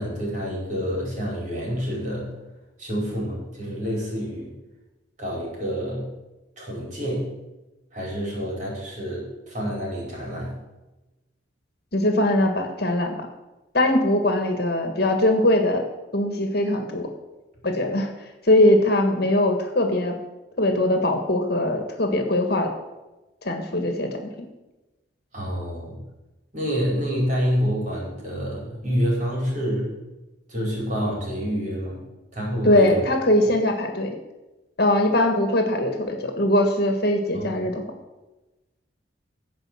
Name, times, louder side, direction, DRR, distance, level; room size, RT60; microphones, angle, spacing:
voice 1, 0.0-2.3 2.8-4.5 5.2-6.1 6.6-7.3 7.9-10.6 25.3-26.0 26.5-30.0 30.5-32.0 32.3-33.0 37.3-37.5, equal, 40° right, -4 dB, 5.0 m, -27 dB
voice 2, 11.9-13.3 13.7-15.8 16.1-17.1 17.6-18.1 18.4-20.1 20.6-22.7 23.4-24.5 32.6-34.2 34.8-37.8, left 1 dB, 55° left, 4 dB, 1.6 m, -21 dB
15.5 x 5.2 x 7.7 m, 1.1 s
head